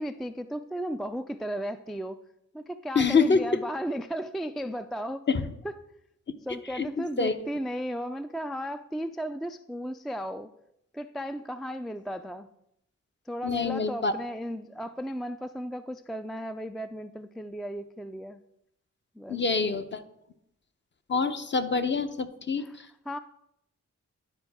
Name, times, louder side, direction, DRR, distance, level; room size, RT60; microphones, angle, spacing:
voice 1, 0.0-2.2 2.5-5.3 5.6-5.8 6.4-10.5 10.9-12.5 13.3-18.4 19.2-19.4 22.6-22.8 23.1-23.2, equal, ahead, 10 dB, 0.3 m, -35 dB
voice 2, 2.9-3.4 5.3-5.4 6.7-7.3 13.4-14.1 19.3-20.0 21.1-22.9, left 4 dB, 35° left, 9 dB, 0.7 m, -26 dB
11.0 x 4.0 x 3.5 m, 0.78 s
supercardioid pair, 45°, 32 cm